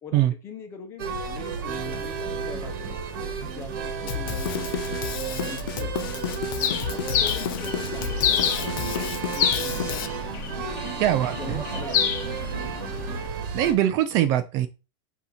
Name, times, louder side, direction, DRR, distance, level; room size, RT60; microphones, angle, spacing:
voice 1, 0.0-3.2 3.5-6.5 6.9-10.1 10.7-12.2 12.4-12.7, left 5 dB, 20° left, 6 dB, 0.9 m, -42 dB
sound 1, 1.0-13.7, right 6 dB, 65° right, 1.6 m, -32 dB
Drum kit, 4.1-10.1, left 11 dB, 75° left, 0.7 m, -32 dB
Bird, 6.6-13.3, left 9 dB, 50° left, 0.9 m, -29 dB
voice 2, 11.0-11.6 13.5-14.7, right 12 dB, 30° right, 10 dB, 0.4 m, -22 dB
8.1 x 2.8 x 4.2 m, 0.31 s
supercardioid pair, 175°, 12 cm